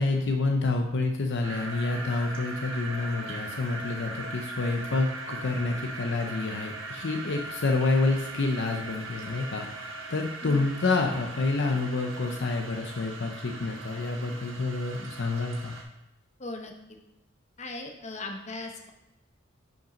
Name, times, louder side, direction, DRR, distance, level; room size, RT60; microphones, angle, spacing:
voice 1, 0.0-15.7, left 3 dB, 60° left, 3 dB, 0.6 m, -28 dB
sound 1, 1.4-15.8, right 2 dB, 70° right, 1.3 m, -40 dB
voice 2, 16.4-17.0 17.6-18.9, left 2 dB, 35° left, 3 dB, 0.9 m, -38 dB
5.9 x 5.2 x 5.1 m, 0.94 s
head